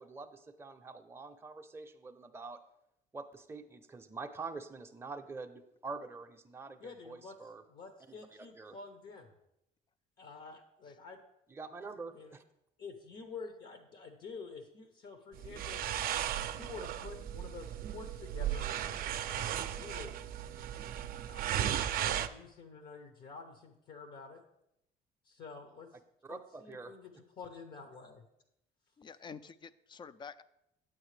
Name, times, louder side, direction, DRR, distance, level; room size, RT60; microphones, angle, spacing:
voice 1, 0.0-2.6 3.1-7.6 8.1-8.8 11.5-12.4 26.2-26.9, right 4 dB, 15° right, 5 dB, 0.6 m, -46 dB
voice 2, 6.8-7.4 7.7-9.3 10.2-11.2 12.1-12.4 12.8-15.8 16.3-18.7 19.2-20.1 21.3-21.4 21.8-24.4 25.2-25.9 26.3-28.2, left 4 dB, 60° left, 6 dB, 0.9 m, -49 dB
sound 1, 15.4-22.3, right 11 dB, 60° right, 0.4 m, -36 dB
voice 3, 29.0-30.4, left 6 dB, 30° left, 16 dB, 0.3 m, -48 dB
8.8 x 8.8 x 3.3 m, 0.84 s
cardioid pair, 110°, 17 cm